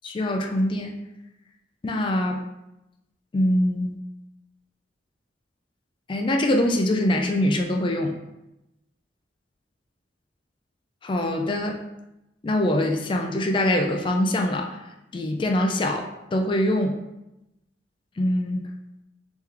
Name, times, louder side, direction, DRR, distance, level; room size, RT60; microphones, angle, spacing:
voice 1, 0.0-1.0 1.8-2.4 3.3-4.0 6.1-8.1 11.0-11.8 12.4-14.7 15.1-17.0 18.2-18.6, left 1 dB, 25° left, 3 dB, 0.3 m, -23 dB
3.7 x 3.0 x 3.2 m, 0.92 s
head